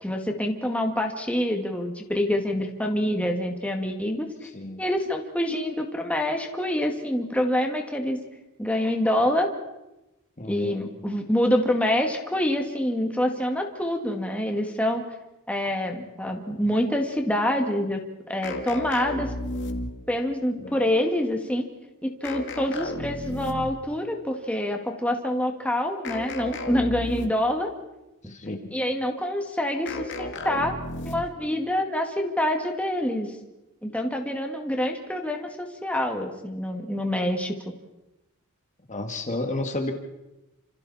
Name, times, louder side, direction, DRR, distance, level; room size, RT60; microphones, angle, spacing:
voice 1, 0.0-4.5 4.8-8.2 8.6-9.5 10.5-15.0 15.5-18.0 18.3-19.3 20.1-21.6 22.0-27.7 28.7-30.7 31.0-33.3 33.8-37.5, left 1 dB, 5° left, 2 dB, 2.1 m, -26 dB
voice 2, 4.5-4.8 10.4-10.9 20.6-20.8 28.2-28.6 38.9-39.9, left 2 dB, 35° left, 4 dB, 2.1 m, -31 dB
sound 1, 18.4-20.2 22.2-23.9 26.0-27.6 29.9-31.5, left 1 dB, 55° left, 2.1 m, -33 dB
29.5 x 27.5 x 4.3 m, 0.98 s
head